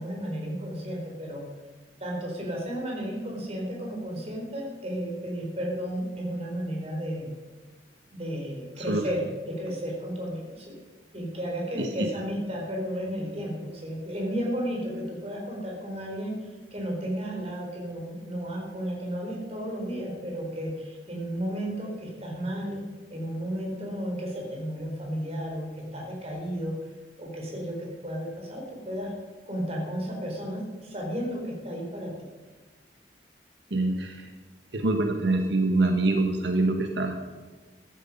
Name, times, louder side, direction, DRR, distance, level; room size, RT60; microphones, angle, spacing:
voice 1, 0.0-1.5 2.0-7.3 8.1-10.8 11.1-16.3 16.7-22.8 23.1-26.8 27.2-29.1 29.5-32.1, equal, 35° right, 0 dB, 4.2 m, -33 dB
voice 2, 11.8-12.1 33.7-34.3 34.7-37.2, right 2 dB, 85° right, 4 dB, 1.4 m, -25 dB
14.5 x 13.0 x 5.4 m, 1.3 s
head